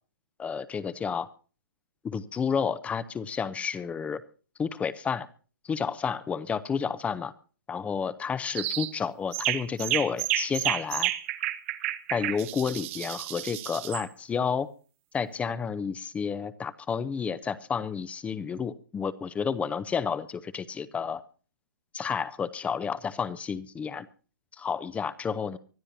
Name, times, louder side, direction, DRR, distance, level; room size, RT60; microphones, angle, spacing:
voice 1, 0.4-1.3 2.0-4.2 4.6-5.3 5.6-7.3 7.7-11.1 12.1-14.7 15.1-21.2 21.9-24.1 24.6-25.6, left 6 dB, 10° left, 15 dB, 0.7 m, -31 dB
sound 1, 8.5-8.9 9.3-14.0, right 15 dB, 40° right, 1.0 m, -31 dB
24.5 x 13.0 x 2.7 m, 0.38 s
figure-of-eight pair, 130°, 11 cm